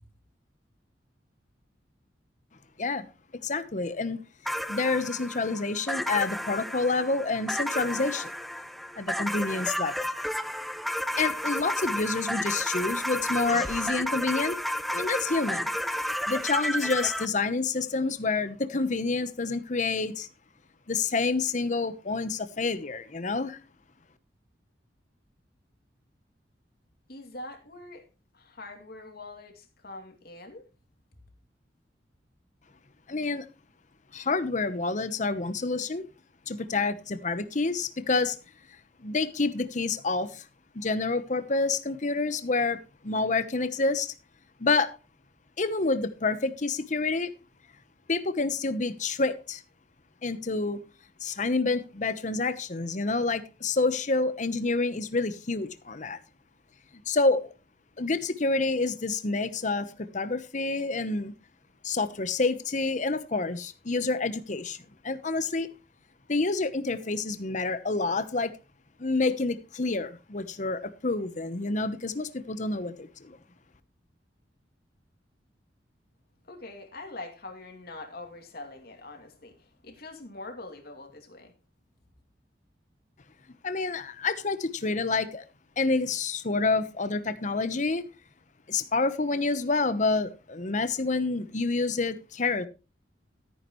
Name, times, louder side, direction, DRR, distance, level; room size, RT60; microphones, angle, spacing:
voice 1, 3.4-4.2 4.7-8.3 9.0-10.1 11.2-14.6 14.9-15.7 16.3-20.3 20.9-23.6 33.1-33.5 34.1-36.0 36.5-38.4 39.0-40.5 40.7-44.1 44.6-44.9 45.6-47.3 48.1-49.6 50.2-50.8 51.2-56.2 57.1-57.5 58.0-61.3 61.8-65.7 66.3-68.5 69.0-73.4 83.6-85.4 85.8-88.0 88.7-92.7, left 3 dB, 45° left, 1.0 m, -28 dB
sound 1, 4.4-17.3, equal, ahead, 0.5 m, -32 dB
voice 2, 27.1-28.1 28.3-30.7 76.4-81.5, left 2 dB, 60° left, 2.7 m, -44 dB
13.5 x 9.7 x 3.1 m
head